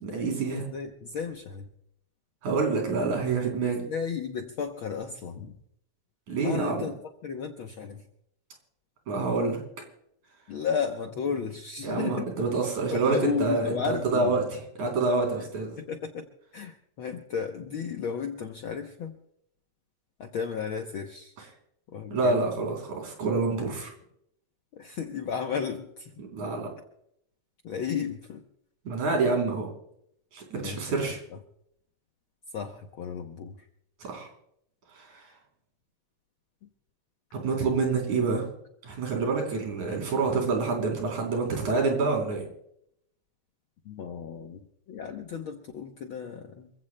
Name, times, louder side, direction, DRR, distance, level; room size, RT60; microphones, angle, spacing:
voice 1, 0.0-0.6 2.4-3.9 6.3-6.9 9.1-9.6 11.8-15.8 22.1-23.9 26.3-26.7 28.8-29.7 30.3-31.2 34.0-34.3 34.9-35.3 37.3-38.4 38.9-42.4, right 4 dB, 80° right, 1 dB, 4.8 m, -27 dB
voice 2, 0.7-1.7 3.9-5.6 6.4-6.9 7.2-8.1 10.5-12.3 12.9-14.4 15.8-16.2 16.5-19.2 20.2-21.3 21.9-22.5 24.7-26.2 27.6-28.4 30.6-31.4 32.5-33.7 38.3-38.5 43.8-44.6 44.9-46.7, left 6 dB, 70° left, 4 dB, 1.2 m, -34 dB
27.5 x 15.5 x 2.2 m, 0.74 s
omnidirectional pair, 3.4 m